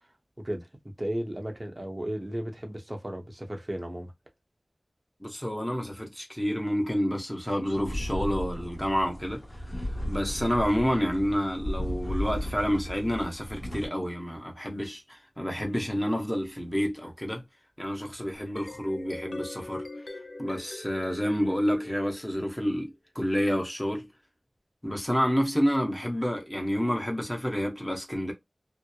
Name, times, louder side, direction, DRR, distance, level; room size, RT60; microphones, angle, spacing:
voice 1, 1.0-4.1, right 1 dB, 30° right, 0.8 m, -34 dB
voice 2, 5.2-17.4 17.8-19.9 20.4-24.1 24.8-28.3, equal, 10° left, 0.9 m, -29 dB
sound 1, 7.6-13.9, equal, 45° left, 1.2 m, -35 dB
sound 2, 18.3-22.7, left 2 dB, 70° left, 0.3 m, -42 dB
2.8 x 2.0 x 2.2 m
wide cardioid pair, 50°, 0 cm